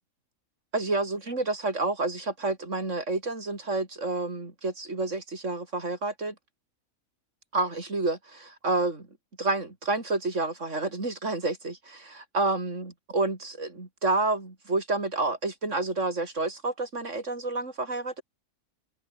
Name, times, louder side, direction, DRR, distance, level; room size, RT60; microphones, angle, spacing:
voice 1, 0.7-6.3 7.5-9.1 9.4-18.2, right 2 dB, 60° right, 4.3 m, -29 dB
omnidirectional pair, 1.4 m